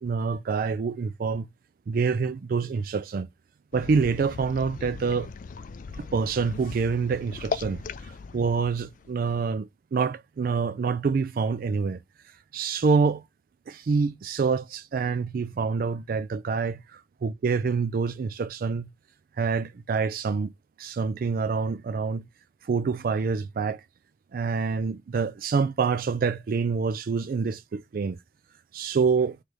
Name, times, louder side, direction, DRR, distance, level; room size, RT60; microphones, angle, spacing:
voice 1, 0.0-1.5 1.9-3.3 3.7-5.3 6.0-12.0 12.5-13.2 13.7-18.9 19.4-20.5 20.8-22.3 22.6-23.8 24.3-28.2 28.7-29.4, right 5 dB, 50° right, 0.3 m, -26 dB
sound 1, 3.7-9.5, left 5 dB, 45° left, 0.4 m, -38 dB
3.3 x 3.2 x 3.8 m
head